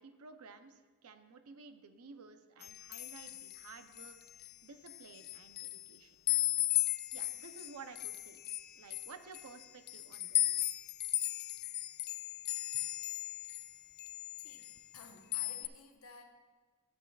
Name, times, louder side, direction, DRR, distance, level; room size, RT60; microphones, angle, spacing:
voice 1, 0.0-6.2 7.1-8.4 8.8-10.7 12.7-12.9, right 4 dB, 75° right, 8 dB, 0.6 m, -54 dB
sound 1, 2.6-4.5 4.9-5.9 6.3-13.7 14.0-15.0 15.3-15.7, left 16 dB, 45° left, 0.3 m, -36 dB
voice 2, 14.4-16.4, left 4 dB, 70° left, 4 dB, 1.0 m, -55 dB
12.0 x 8.6 x 2.3 m, 1.4 s
head